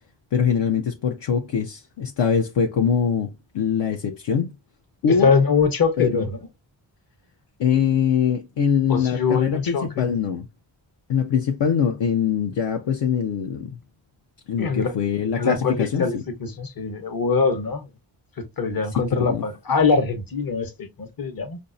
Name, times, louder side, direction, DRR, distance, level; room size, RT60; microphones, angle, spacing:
voice 1, 0.3-4.5 5.0-5.3 6.0-6.3 7.6-10.5 11.1-13.8 14.5-16.2 19.2-19.4, left 7 dB, 65° left, 0.6 m, -23 dB
voice 2, 5.1-6.4 8.9-10.1 14.6-14.9 15.4-17.9 18.4-21.6, left 5 dB, 45° left, 0.9 m, -23 dB
5.3 x 2.0 x 2.5 m
cardioid pair, 65°, 47 cm